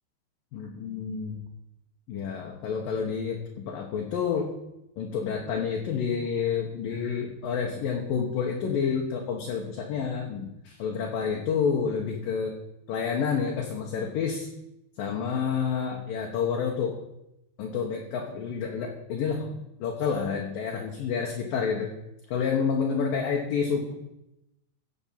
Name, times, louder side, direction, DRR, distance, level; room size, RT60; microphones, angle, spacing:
voice 1, 0.5-1.4 2.1-4.5 5.0-12.5 12.9-14.5 15.0-17.0 17.6-19.5 19.8-21.9 22.3-23.9, left 6 dB, 65° left, 0 dB, 2.7 m, -29 dB
16.0 x 7.1 x 7.3 m, 0.87 s
omnidirectional pair, 4.9 m